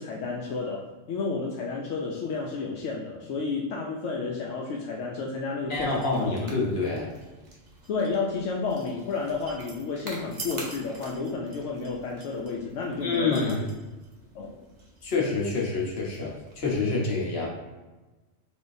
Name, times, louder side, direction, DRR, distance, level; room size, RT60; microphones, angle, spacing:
voice 1, 0.0-6.4 7.9-13.7 14.3-14.6, left 4 dB, 80° left, -2 dB, 0.9 m, -31 dB
voice 2, 5.7-7.1 13.0-13.6 15.0-17.5, left 3 dB, 60° left, -2 dB, 1.1 m, -27 dB
sound 1, 5.7-16.8, right 2 dB, 40° right, 0.8 m, -46 dB
4.4 x 3.5 x 2.6 m, 1.2 s
omnidirectional pair, 1.2 m